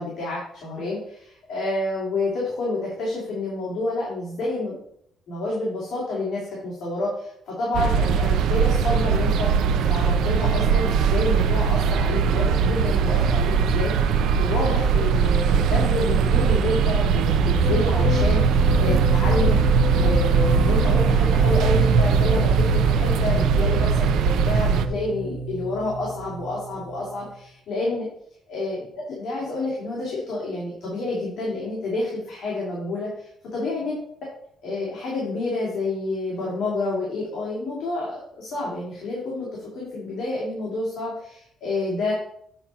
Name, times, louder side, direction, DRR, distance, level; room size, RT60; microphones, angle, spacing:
voice 1, 0.0-4.8 5.3-9.5 9.9-19.6 19.9-28.1 28.5-34.0 34.6-42.1, left 2 dB, 55° left, -5 dB, 3.0 m, -29 dB
sound 1, 7.7-24.9, right 6 dB, 75° right, 0.6 m, -20 dB
sound 2, 17.5-27.2, equal, 85° left, 1.7 m, -27 dB
8.8 x 4.4 x 5.6 m, 0.70 s
cardioid pair, 165°, 0 cm